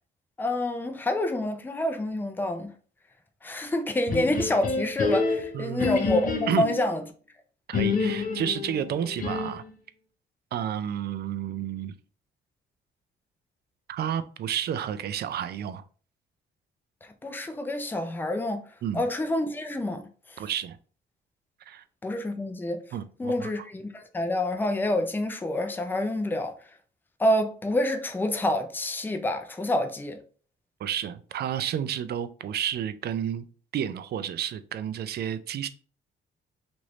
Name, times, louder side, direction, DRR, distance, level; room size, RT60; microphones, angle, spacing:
voice 1, 0.4-2.7 3.4-7.0 17.2-18.6 18.9-20.0 22.0-22.8 23.2-26.5 27.2-30.2, left 1 dB, 10° left, 0.5 m, -27 dB
sound 1, 4.1-6.9 7.7-9.7, left 4 dB, 45° left, 0.8 m, -28 dB
voice 2, 5.5-5.9 6.5-6.6 7.7-9.6 10.5-11.9 13.9-15.8 18.8-19.0 20.4-20.8 21.7-21.8 22.9-23.7 30.8-33.5 33.7-35.7, right 9 dB, 55° right, 0.4 m, -31 dB
3.1 x 2.6 x 3.0 m
cardioid pair, 90°, 20 cm